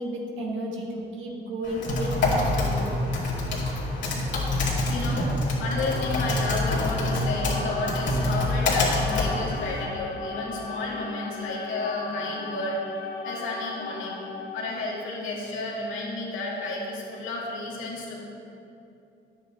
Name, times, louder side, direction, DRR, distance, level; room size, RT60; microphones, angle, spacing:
voice 1, 0.0-2.9, right 1 dB, 80° right, -1 dB, 1.7 m, -33 dB
Typing, 1.6-9.8, left 2 dB, 65° left, 2.3 m, -26 dB
voice 2, 3.9-13.0 13.2-14.2 14.5-18.2, left 2 dB, 90° left, -4 dB, 2.0 m, -32 dB
sound 1, 5.5-15.0, left 4 dB, 45° left, 1.7 m, -37 dB
10.0 x 8.4 x 4.2 m, 2.7 s
cardioid pair, 90°, 20 cm